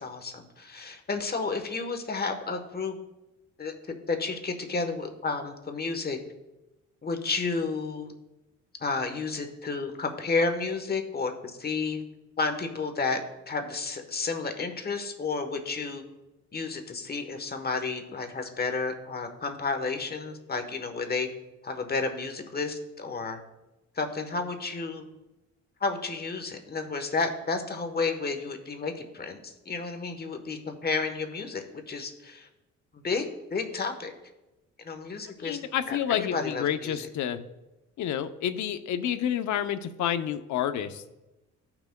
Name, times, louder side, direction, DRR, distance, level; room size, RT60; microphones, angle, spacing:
voice 1, 0.0-3.0 3.6-6.2 7.0-8.1 8.8-12.0 12.4-13.2 13.5-16.0 16.5-21.3 21.6-23.4 23.9-25.1 25.8-32.5 32.9-34.1 34.8-35.6 35.9-37.1, left 4 dB, 30° left, 6 dB, 1.2 m, -31 dB
voice 2, 35.4-37.4 38.0-41.1, left 10 dB, 70° left, 10 dB, 0.7 m, -29 dB
15.0 x 5.9 x 2.2 m, 1.0 s
cardioid pair, 90°, 30 cm